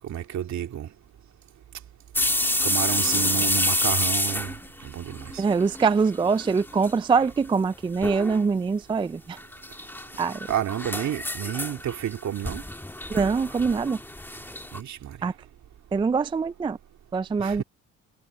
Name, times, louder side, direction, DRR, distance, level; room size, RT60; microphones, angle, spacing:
voice 1, 0.0-0.9 2.6-4.5 4.8-5.4 10.5-12.6 14.7-15.2 17.4-17.6, right 11 dB, 65° right, 2.4 m, -30 dB
sound 1, 2.1-6.0 6.2-6.9 7.2-7.3 8.0-8.4 9.4-14.8, left 1 dB, 5° left, 1.6 m, -28 dB
voice 2, 5.4-9.4 10.2-10.4 13.1-14.0 15.2-15.3 15.9-16.8 17.1-17.6, right 5 dB, 15° right, 0.3 m, -23 dB
cardioid pair, 90°, 30 cm